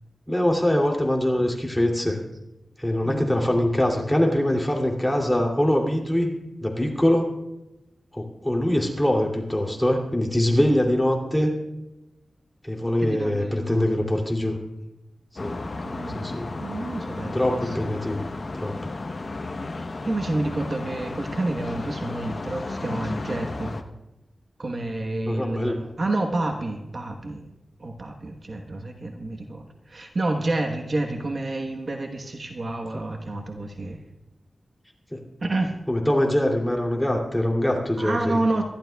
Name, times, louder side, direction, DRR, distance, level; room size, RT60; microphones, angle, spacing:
voice 1, 0.3-2.2 2.8-6.3 6.6-7.3 8.1-11.5 12.6-14.6 15.4-15.5 16.1-16.5 17.3-18.2 18.5-18.8 25.3-25.8 35.1-35.2 35.9-38.4, left 1 dB, 10° left, 0 dB, 2.7 m, -23 dB
voice 2, 3.0-3.5 13.0-14.2 15.6-16.3 16.6-17.8 20.0-23.7 24.6-27.4 27.8-34.0 35.4-35.7 38.0-38.6, right 2 dB, 50° right, 3 dB, 1.1 m, -29 dB
sound 1, 15.4-23.8, left 2 dB, 50° left, 1.0 m, -33 dB
26.0 x 12.0 x 2.3 m, 0.93 s
wide cardioid pair, 90°, 0 cm